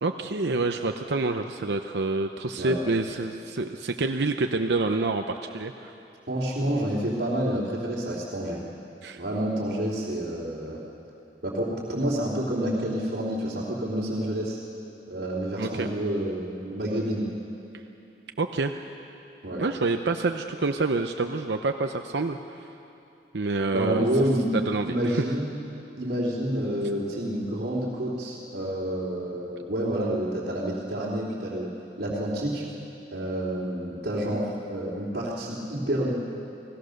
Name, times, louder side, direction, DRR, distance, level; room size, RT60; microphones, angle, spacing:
voice 1, 0.0-5.9 9.0-9.2 15.6-15.9 18.4-18.7 19.6-22.7 23.3-24.1 24.5-25.2, right 3 dB, 80° right, 5 dB, 0.8 m, -27 dB
voice 2, 6.3-8.6 9.2-10.8 11.4-14.6 15.1-17.3 19.4-19.6 23.7-24.5 24.8-25.5 26.0-31.7 32.0-32.6 33.1-36.1, right 1 dB, 60° right, -7 dB, 3.2 m, -28 dB
29.5 x 19.0 x 6.6 m, 2.8 s
head